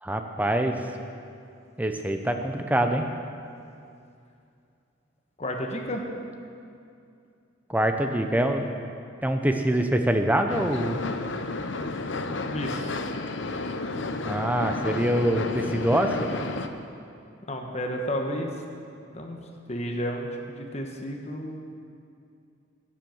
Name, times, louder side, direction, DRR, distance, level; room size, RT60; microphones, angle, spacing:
voice 1, 0.0-0.9 1.8-3.1 7.7-8.7 9.2-11.0 14.2-16.3, right 1 dB, 10° right, 5 dB, 0.7 m, -25 dB
voice 2, 5.4-6.0 12.5-12.9 17.5-18.5 19.1-19.4 19.7-21.6, equal, 30° left, 2 dB, 1.2 m, -31 dB
sound 1, 10.5-16.7, left 3 dB, 60° left, 0.7 m, -31 dB
12.5 x 9.2 x 7.1 m, 2.5 s
head